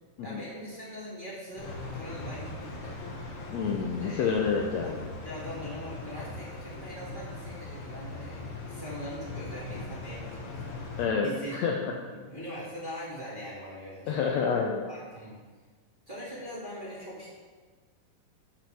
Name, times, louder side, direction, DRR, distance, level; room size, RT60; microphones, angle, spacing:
voice 1, 0.2-3.0 4.0-4.2 4.8-14.4 14.9-15.4 16.1-17.3, equal, 20° right, -7 dB, 1.8 m, -42 dB
sound 1, 1.6-11.1, left 3 dB, 55° left, 1.5 m, -40 dB
voice 2, 3.5-5.0 11.0-11.9 14.1-14.8, left 5 dB, 85° left, 1 dB, 1.5 m, -28 dB
12.5 x 8.9 x 3.5 m, 1.5 s
omnidirectional pair, 4.1 m